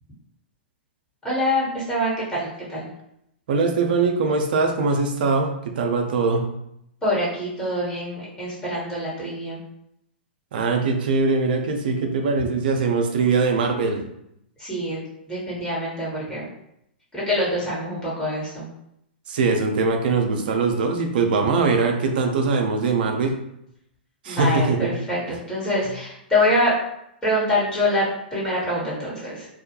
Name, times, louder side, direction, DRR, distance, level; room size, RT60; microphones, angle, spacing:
voice 1, 1.2-2.9 7.0-9.6 14.6-15.0 15.3-16.5 17.1-18.7 24.3-26.7 27.2-29.5, left 1 dB, 15° left, -8 dB, 1.1 m, -25 dB
voice 2, 3.5-6.5 10.5-14.0 19.3-23.3 24.2-25.0 25.3-25.4, right 4 dB, 60° right, 3 dB, 0.5 m, -22 dB
2.3 x 2.1 x 2.8 m, 0.78 s
figure-of-eight pair, 110°, 6 cm